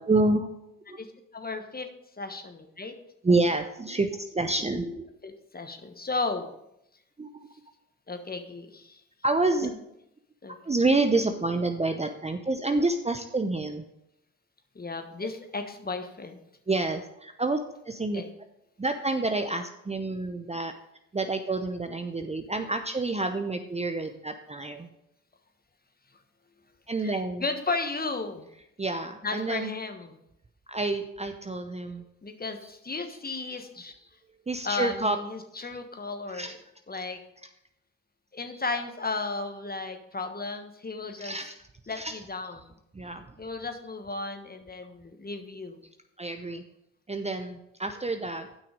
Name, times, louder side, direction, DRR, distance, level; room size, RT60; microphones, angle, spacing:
voice 1, 0.1-0.5 0.9-1.0 3.2-5.0 7.2-7.3 9.2-9.7 10.6-13.8 16.7-17.6 17.8-18.2 18.8-20.7 21.1-24.9 26.9-27.5 28.8-29.7 30.7-32.0 33.5-33.6 34.5-35.2 36.3-36.5 37.0-37.1 41.2-41.6 41.9-42.2 42.9-43.3 46.2-46.6 47.1-48.5, right 2 dB, 20° right, 7 dB, 0.7 m, -28 dB
voice 2, 1.3-1.9 2.2-2.9 5.2-6.5 8.1-9.0 9.6-9.7 10.4-10.5 14.7-16.4 18.1-18.3 27.0-28.4 29.2-30.2 32.2-33.9 34.6-36.5 36.9-37.2 38.3-41.3 41.9-42.7 43.4-45.8, left 3 dB, 25° left, 6 dB, 1.3 m, -34 dB
9.3 x 5.9 x 5.1 m, 0.82 s
hypercardioid pair, 45°, 36 cm